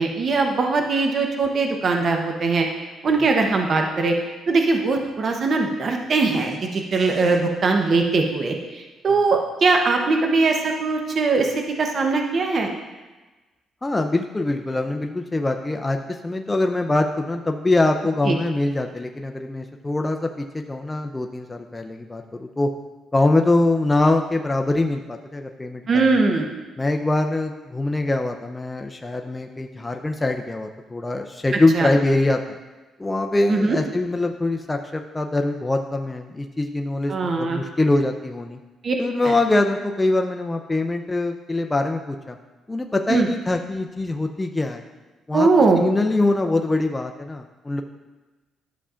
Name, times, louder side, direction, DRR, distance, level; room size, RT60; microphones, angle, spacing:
voice 1, 0.0-2.7 3.0-4.1 4.5-12.7 18.3-18.4 25.9-26.5 31.7-31.9 33.5-33.8 37.1-37.6 38.8-38.9 39.2-39.3 43.1-43.3 45.3-45.8, right 3 dB, 50° right, 3 dB, 0.8 m, -21 dB
voice 2, 13.8-22.7 23.1-26.2 26.8-32.6 33.0-38.6 39.0-42.4 42.7-44.8 45.3-45.5 45.8-47.8, left 2 dB, 15° left, 4 dB, 0.5 m, -23 dB
11.5 x 6.9 x 2.5 m, 1.2 s
cardioid pair, 90°, 0 cm